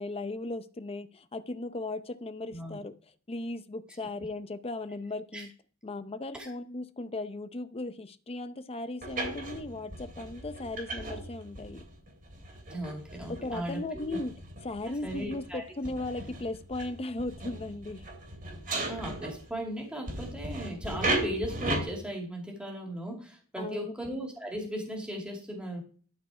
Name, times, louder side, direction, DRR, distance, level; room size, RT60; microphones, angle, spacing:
voice 1, 0.0-2.9 3.3-5.5 5.8-11.8 13.4-14.3 14.6-18.0 23.6-24.0, left 2 dB, 25° left, 0.6 m, -37 dB
voice 2, 2.5-2.8 5.3-5.5 6.3-6.5 12.7-14.2 15.0-15.6 18.8-25.8, equal, 5° right, 2.4 m, -37 dB
sound 1, 9.0-19.6 20.1-21.9, right 2 dB, 40° right, 3.0 m, -37 dB
12.5 x 4.6 x 4.9 m
head